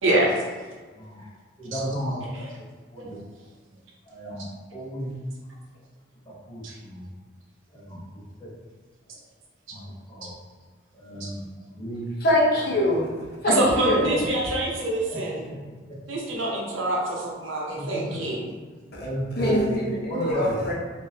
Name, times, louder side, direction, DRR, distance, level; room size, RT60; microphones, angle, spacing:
voice 1, 0.0-0.4 1.7-1.8 3.0-3.1 6.6-6.7 11.2-11.3 13.4-15.4 16.1-18.4, right 1 dB, 85° right, -2 dB, 0.8 m, -25 dB
voice 2, 0.9-1.3 1.6-2.6 2.9-3.2 3.7-4.5 4.7-5.1 6.3-7.1 7.7-8.5 9.7-10.3 10.9-12.2 15.1-15.5 17.7-18.3 19.0-19.8 20.0-20.5, right 1 dB, 25° left, -7 dB, 0.9 m, -34 dB
voice 3, 12.2-13.1 13.4-14.3 18.9-20.7, left 1 dB, 55° left, -4 dB, 0.8 m, -24 dB
3.6 x 2.6 x 2.7 m, 1.4 s
head